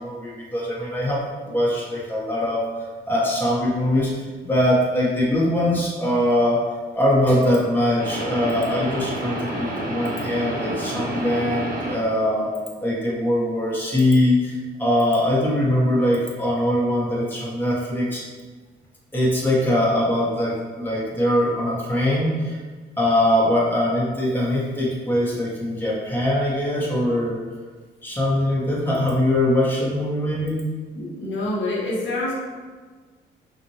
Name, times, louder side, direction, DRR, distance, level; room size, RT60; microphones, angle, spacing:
voice 1, 0.0-2.7 3.1-6.7 6.9-12.5 12.8-18.2 19.1-22.6 23.0-27.4 28.0-30.6, left 1 dB, 10° left, -5 dB, 1.2 m, -22 dB
sound 1, 8.0-12.2, right 1 dB, 45° right, 1.1 m, -29 dB
voice 2, 30.9-32.4, left 2 dB, 70° left, -6 dB, 1.4 m, -26 dB
5.8 x 2.6 x 3.1 m, 1.4 s
cardioid pair, 90°, 20 cm